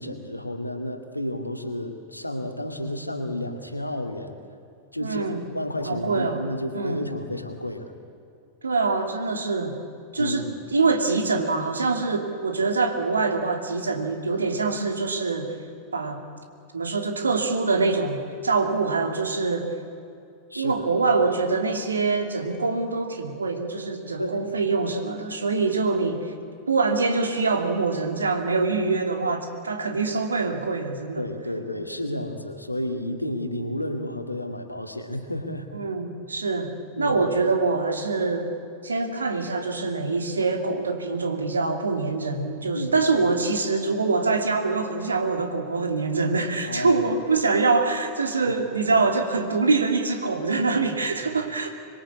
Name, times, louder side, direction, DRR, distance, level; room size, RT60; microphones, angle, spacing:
voice 1, 0.0-4.4 4.9-7.9 10.2-10.5 20.5-20.9 24.2-24.5 31.2-35.7 37.0-37.2 42.7-42.9 46.7-47.0 48.5-48.6 50.7-50.9 51.3-51.4, left 1 dB, 85° left, 5 dB, 2.2 m, -31 dB
voice 2, 5.0-5.4 5.9-6.4 6.7-7.1 8.6-9.8 10.1-10.4 10.7-15.5 15.9-16.2 16.7-19.7 20.5-26.3 26.7-31.2 35.7-38.5 38.8-51.8, right 3 dB, 75° right, 5 dB, 2.6 m, -24 dB
25.5 x 22.0 x 8.5 m, 2.5 s
figure-of-eight pair, 90°, 0 cm